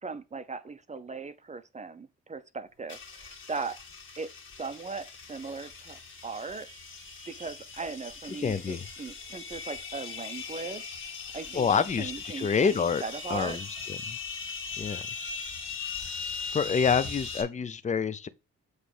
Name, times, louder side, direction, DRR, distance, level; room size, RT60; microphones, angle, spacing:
voice 1, 0.0-3.8 4.2-4.3 4.6-6.7 7.3-11.0 11.3-11.7 12.0-13.6, right 4 dB, 25° right, 0.7 m, -38 dB
sound 1, 2.9-17.4, left 5 dB, 40° left, 1.9 m, -40 dB
voice 2, 8.4-8.9 11.5-13.0 13.3-13.6 14.1-14.2 14.8-15.1 16.5-18.3, left 6 dB, 25° left, 0.6 m, -27 dB
7.6 x 3.2 x 4.9 m
cardioid pair, 90°, 30 cm